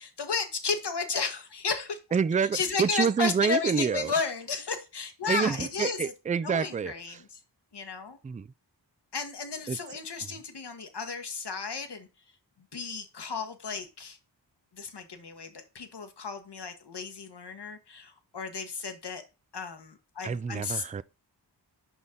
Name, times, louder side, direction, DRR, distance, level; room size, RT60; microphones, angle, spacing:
voice 1, 0.0-2.0 2.5-6.1 6.4-7.4 7.7-8.2 9.1-12.1 12.7-14.2 14.7-19.2 19.5-20.8, left 5 dB, 65° left, 1.4 m, -33 dB
voice 2, 2.1-4.1 5.3-7.2 8.2-8.5 9.7-9.8 20.2-21.0, right 6 dB, 20° right, 0.3 m, -28 dB
6.3 x 5.4 x 3.7 m
cardioid pair, 50°, 44 cm